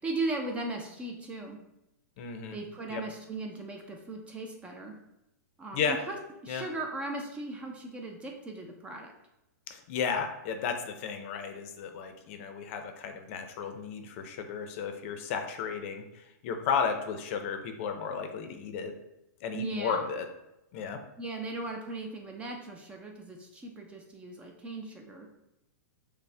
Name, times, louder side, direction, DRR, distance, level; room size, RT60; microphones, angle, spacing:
voice 1, 0.0-1.6 2.5-5.0 5.6-6.2 6.4-9.1 19.5-20.1 21.2-25.3, right 2 dB, 10° right, 2 dB, 0.4 m, -37 dB
voice 2, 2.2-2.6 2.9-3.0 5.7-6.0 6.5-6.6 9.7-18.9 19.4-20.3 20.7-21.0, left 6 dB, 45° left, 6 dB, 0.5 m, -33 dB
5.3 x 2.1 x 3.2 m, 0.89 s
hypercardioid pair, 150°, 10 cm